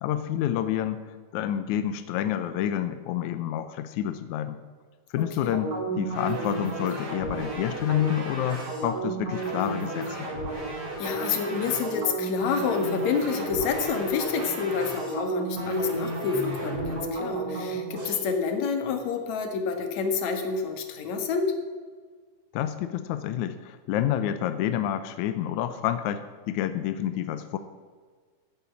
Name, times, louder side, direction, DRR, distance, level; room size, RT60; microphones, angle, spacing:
voice 1, 0.0-4.6 5.1-10.3 22.5-27.6, left 11 dB, 75° left, 10 dB, 1.9 m, -29 dB
voice 2, 5.1-5.6 11.0-21.4, left 5 dB, 60° left, 5 dB, 2.8 m, -28 dB
sound 1, 5.5-18.1, right 2 dB, 45° right, 5.5 m, -33 dB
15.0 x 8.9 x 8.4 m, 1.6 s
omnidirectional pair, 3.8 m